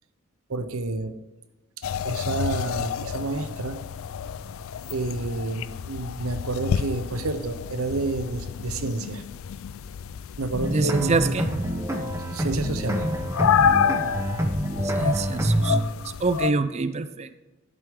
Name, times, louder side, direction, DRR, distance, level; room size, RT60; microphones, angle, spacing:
voice 1, 0.5-1.1 2.0-3.8 4.9-9.2 10.4-11.3 12.3-13.1, right 2 dB, 90° right, 10 dB, 0.8 m, -29 dB
sound 1, 1.8-16.5, left 7 dB, 75° left, 0.4 m, -29 dB
sound 2, 2.1-10.3, left 2 dB, 45° left, 1.8 m, -47 dB
sound 3, 10.5-15.8, right 1 dB, 15° right, 0.9 m, -26 dB
voice 2, 10.7-11.5 15.0-15.8 16.2-17.4, right 3 dB, 30° right, 11 dB, 0.5 m, -25 dB
11.5 x 7.9 x 3.7 m, 1.1 s
head